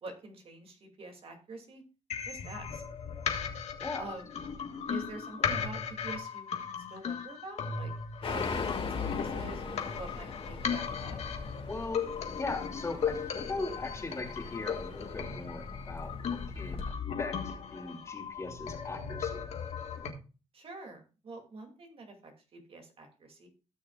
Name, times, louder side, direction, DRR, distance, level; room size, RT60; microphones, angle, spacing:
voice 1, 0.0-1.8 2.2-2.8 4.0-4.3 4.9-6.5 6.9-7.9 8.2-11.2 20.5-23.5, right 3 dB, 55° right, 3 dB, 2.6 m, -46 dB
sound 1, 2.1-20.1, left 7 dB, 70° left, 1.6 m, -37 dB
voice 2, 3.8-4.1 11.6-16.8 17.2-19.4, left 3 dB, 25° left, 2 dB, 2.7 m, -39 dB
sound 2, 8.2-16.9, left 4 dB, 50° left, 2.0 m, -40 dB
16.5 x 6.4 x 2.4 m, 0.32 s
cardioid pair, 100°, 12 cm